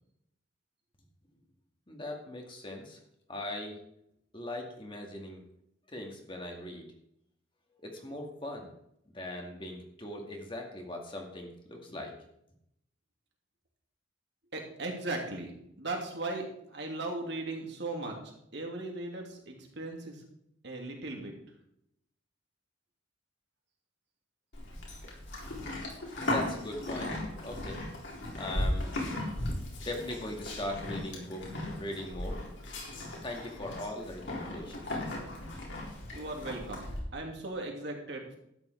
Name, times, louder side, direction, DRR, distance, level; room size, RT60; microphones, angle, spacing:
voice 1, 1.9-3.0 3.3-3.8 4.3-5.4 5.9-6.9 7.8-8.7 9.1-12.2 26.2-27.8 28.3-28.9 29.8-31.5 31.8-32.4 33.2-35.0, left 1 dB, 25° left, 1 dB, 2.2 m, -40 dB
voice 2, 14.5-15.5 15.8-18.2 18.5-20.2 20.6-21.3 36.1-36.9 37.1-38.4, right 2 dB, 60° right, 1 dB, 2.9 m, -37 dB
Livestock farm animals working animals, 24.5-37.0, left 1 dB, 70° left, 4.0 m, -37 dB
13.0 x 9.6 x 4.6 m, 0.75 s
head